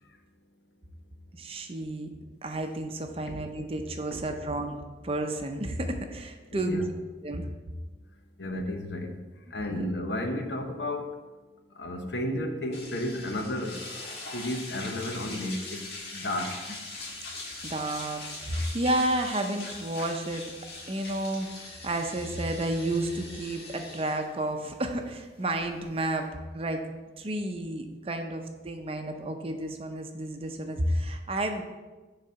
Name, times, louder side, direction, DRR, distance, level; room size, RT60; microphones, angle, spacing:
voice 1, 1.3-2.1 2.4-6.8 7.2-7.5 9.5-9.8 17.6-20.4 20.9-26.3 26.5-26.8 27.2-31.6, right 1 dB, 35° right, 5 dB, 0.6 m, -31 dB
voice 2, 6.5-6.9 8.4-9.1 9.5-11.1 11.8-13.9 14.3-15.8 16.1-16.6, left 1 dB, 80° left, 4 dB, 0.9 m, -32 dB
sound 1, 12.7-26.2, left 2 dB, 60° left, 1.7 m, -42 dB
6.4 x 4.0 x 5.7 m, 1.2 s
head